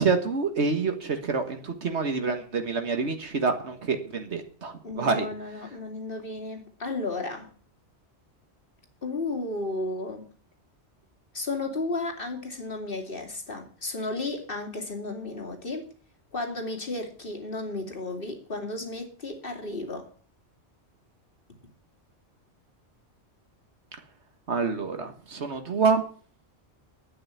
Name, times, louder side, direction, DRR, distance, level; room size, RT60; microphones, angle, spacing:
voice 1, 0.0-5.3 24.5-26.0, right 4 dB, 70° right, 1.7 m, -27 dB
voice 2, 4.8-7.5 9.0-10.3 11.3-15.9 16.3-20.1, left 2 dB, 50° left, 3.0 m, -33 dB
11.0 x 9.1 x 9.4 m
omnidirectional pair, 1.2 m